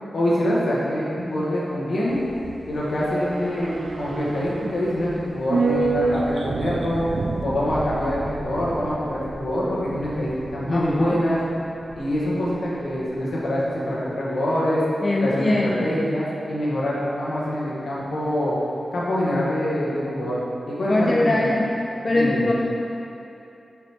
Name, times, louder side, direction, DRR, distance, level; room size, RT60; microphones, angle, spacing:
voice 1, 0.1-2.2 2.7-7.1 7.4-11.4 11.9-14.8 15.2-18.5 18.9-20.4 20.7-21.5 22.1-22.5, left 1 dB, 70° left, -7 dB, 1.4 m, -25 dB
sound 1, 2.1-12.6 12.8-12.9, right 3 dB, 70° right, 0.3 m, -30 dB
voice 2, 10.7-11.2 15.0-15.9 20.9-21.8 22.0-22.5, left 2 dB, 35° left, -1 dB, 0.3 m, -22 dB
6.4 x 4.9 x 3.5 m, 2.8 s
wide cardioid pair, 135°, 0 cm